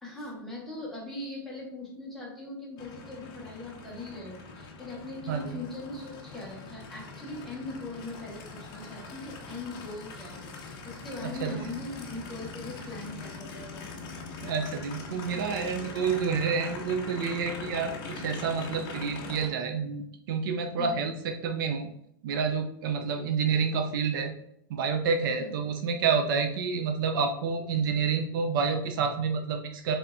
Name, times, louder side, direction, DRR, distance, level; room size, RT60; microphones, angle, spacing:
voice 1, 0.0-13.9 20.8-21.0 23.5-23.6 25.4-25.5, left 2 dB, ahead, -6 dB, 1.3 m, -40 dB
Aircraft, 2.8-19.5, left 3 dB, 35° left, 0.7 m, -42 dB
voice 2, 14.4-21.1 21.4-21.9 22.2-24.3 24.7-30.0, right 5 dB, 65° right, 5 dB, 0.5 m, -29 dB
4.2 x 3.5 x 2.6 m, 0.73 s
supercardioid pair, 155°, 12 cm